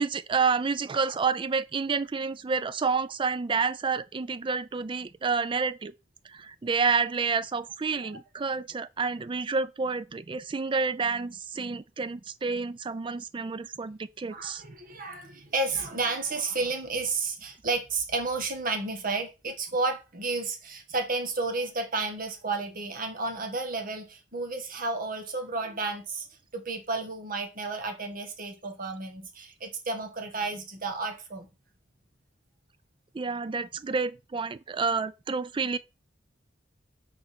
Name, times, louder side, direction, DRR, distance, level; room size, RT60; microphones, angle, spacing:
voice 1, 0.0-5.9 6.3-14.6 33.1-35.8, right 5 dB, 25° right, 0.4 m, -29 dB
voice 2, 14.3-26.3 26.5-31.5, right 3 dB, 50° right, 1.6 m, -32 dB
6.4 x 4.0 x 6.1 m
head